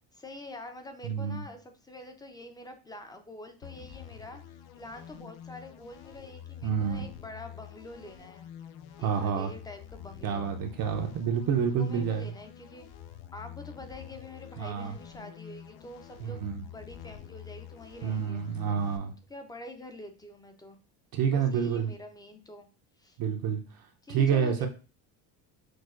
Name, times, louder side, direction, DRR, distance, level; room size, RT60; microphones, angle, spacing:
voice 1, 0.1-8.5 9.0-11.1 11.7-12.9 13.3-18.4 19.3-20.8 21.3-22.7 23.0-23.2 24.0-24.7, left 1 dB, 10° left, 6 dB, 0.6 m, -46 dB
voice 2, 1.0-1.4 6.6-7.1 9.0-9.5 10.2-12.3 14.6-14.9 16.2-16.6 18.0-19.1 21.1-21.9 23.2-23.6 24.1-24.7, right 7 dB, 50° right, 4 dB, 0.7 m, -28 dB
sound 1, 3.6-19.0, left 10 dB, 55° left, 0.5 m, -47 dB
6.2 x 2.3 x 2.4 m, 0.34 s
supercardioid pair, 95°, 47 cm